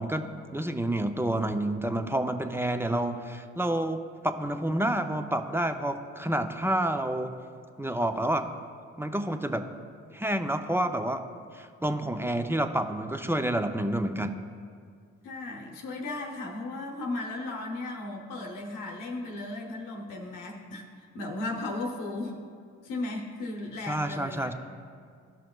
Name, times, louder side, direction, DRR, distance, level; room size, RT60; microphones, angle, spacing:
voice 1, 0.0-7.3 7.8-8.5 9.0-9.7 10.1-11.2 11.5-14.4 23.9-24.5, right 1 dB, 10° right, 8 dB, 0.4 m, -29 dB
voice 2, 15.2-22.4 22.8-24.5, left 2 dB, 80° left, 1 dB, 0.9 m, -36 dB
14.0 x 5.7 x 2.3 m, 2.1 s
supercardioid pair, 55°, 32 cm